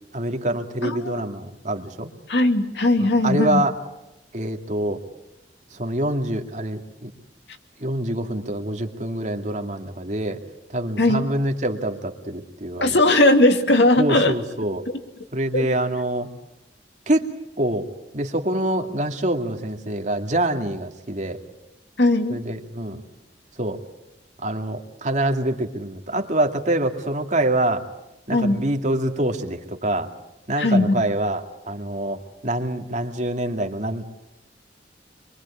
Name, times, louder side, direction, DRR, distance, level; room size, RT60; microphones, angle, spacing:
voice 1, 0.1-2.1 3.0-3.8 4.3-5.0 5.7-7.1 7.8-10.4 10.7-13.0 14.0-14.9 15.3-16.3 17.1-17.2 17.6-17.9 18.1-21.4 22.3-23.0 23.6-23.8 24.4-27.8 28.3-30.1 30.5-34.0, right 1 dB, 45° right, 4 dB, 2.4 m, -25 dB
voice 2, 0.8-1.2 2.3-3.6 11.0-11.2 12.8-14.3 15.5-15.7 22.0-22.4 28.3-28.6 30.6-30.9, left 2 dB, 75° left, 6 dB, 2.5 m, -18 dB
26.0 x 24.0 x 8.6 m, 0.92 s
head